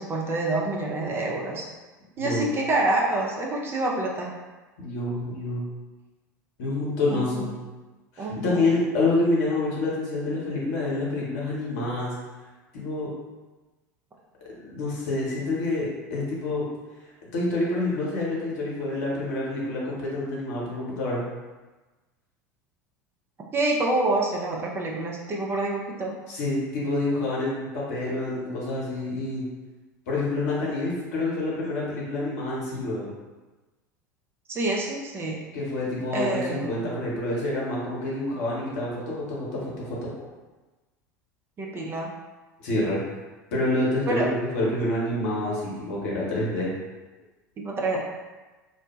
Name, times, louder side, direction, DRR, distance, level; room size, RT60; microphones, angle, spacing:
voice 1, 0.0-1.7 2.2-4.4 7.1-7.5 8.2-8.7 23.5-26.2 34.5-35.4 36.1-36.8 41.6-42.1 44.1-44.3 47.6-48.0, right 2 dB, 25° right, -1 dB, 0.5 m, -27 dB
voice 2, 4.8-5.6 6.6-7.5 8.1-12.1 12.7-13.1 14.6-16.6 17.3-21.2 26.3-29.4 30.1-33.1 35.5-40.0 42.6-43.0 43.5-44.2 44.5-46.7, left 2 dB, 55° left, -5 dB, 0.9 m, -27 dB
2.6 x 2.1 x 3.0 m, 1.2 s
figure-of-eight pair, 75°, 10 cm